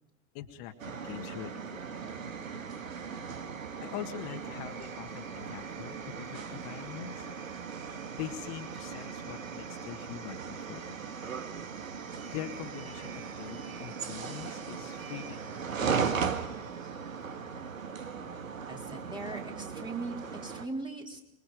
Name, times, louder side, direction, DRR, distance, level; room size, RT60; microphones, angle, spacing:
voice 1, 0.3-2.0 3.8-7.3 8.2-11.1 12.3-15.4 15.8-16.5, left 12 dB, 40° left, 4 dB, 1.8 m, -43 dB
sound 1, 0.8-20.7, right 6 dB, 70° right, 1.8 m, -38 dB
voice 2, 18.7-21.2, right 2 dB, 10° right, 1 dB, 3.6 m, -39 dB
26.5 x 22.5 x 5.0 m, 0.89 s
figure-of-eight pair, 95°, 41 cm